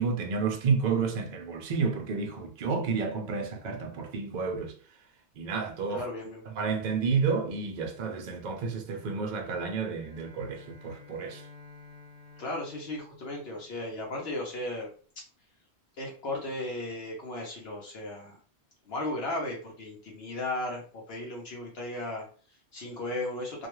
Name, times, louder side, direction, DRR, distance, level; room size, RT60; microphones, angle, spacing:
voice 1, 0.0-4.8 5.4-6.1 6.5-11.5, right 5 dB, 55° right, 0.5 m, -30 dB
voice 2, 5.9-6.4 12.4-14.9 15.2-15.3 16.0-18.4 18.9-23.7, left 1 dB, 65° left, 0.9 m, -36 dB
Bowed string instrument, 9.9-14.3, left 4 dB, 10° right, 0.9 m, -52 dB
2.3 x 2.2 x 3.0 m
omnidirectional pair, 1.1 m